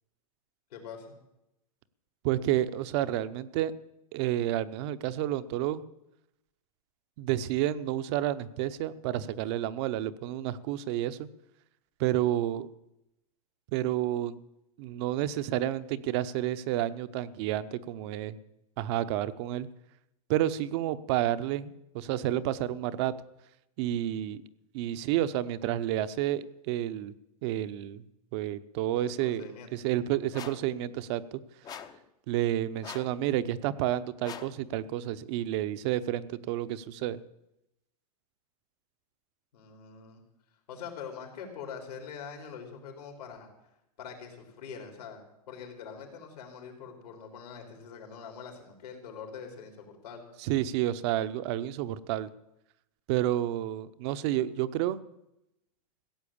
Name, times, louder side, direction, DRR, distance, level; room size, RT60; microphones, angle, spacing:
voice 1, 0.7-1.1 29.1-29.7 39.5-40.2 40.7-43.5 44.0-50.3, left 6 dB, 75° left, 3 dB, 4.0 m, -44 dB
voice 2, 2.2-3.7 4.1-5.8 7.2-11.3 12.0-12.7 13.7-14.4 14.8-18.4 18.8-19.7 20.3-23.1 23.8-24.4 24.7-27.1 27.4-28.0 28.3-29.4 29.7-31.4 32.3-37.2 50.4-52.3 53.1-55.0, right 13 dB, 45° right, 13 dB, 0.7 m, -30 dB
sound 1, 30.3-30.7 31.6-32.0 32.8-33.2 34.2-34.6, left 8 dB, 20° left, 0.7 m, -43 dB
16.0 x 7.7 x 8.6 m, 0.87 s
hypercardioid pair, 140°, 20 cm